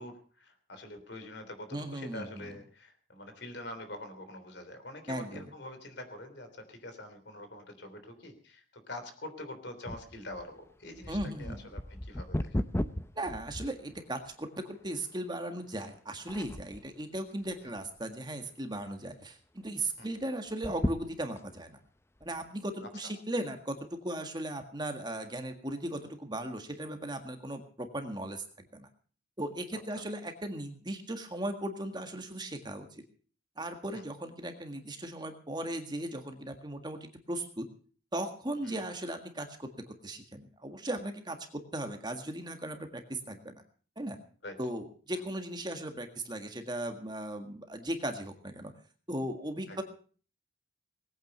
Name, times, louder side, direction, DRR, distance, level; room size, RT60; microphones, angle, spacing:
voice 1, 0.0-12.5 20.0-20.1 23.0-23.1 30.0-30.1 33.9-34.0 38.6-38.8 44.4-44.6 49.7-49.8, left 1 dB, 55° left, 8 dB, 3.5 m, -45 dB
voice 2, 1.7-2.5 5.1-5.5 11.1-11.6 13.1-21.8 22.2-28.9 29.4-33.0 33.6-37.7 38.1-43.5 44.0-44.2 44.6-48.7 49.1-49.8, right 1 dB, 20° right, 6 dB, 1.7 m, -37 dB
sound 1, 9.9-14.3 14.9-15.0 15.7-16.0 16.3-16.9 17.5-18.2 18.5-18.6 18.9-19.0 20.5-21.6 22.2-22.3, left 1 dB, 15° left, 0.6 m, -36 dB
20.0 x 9.2 x 6.7 m, 0.43 s
head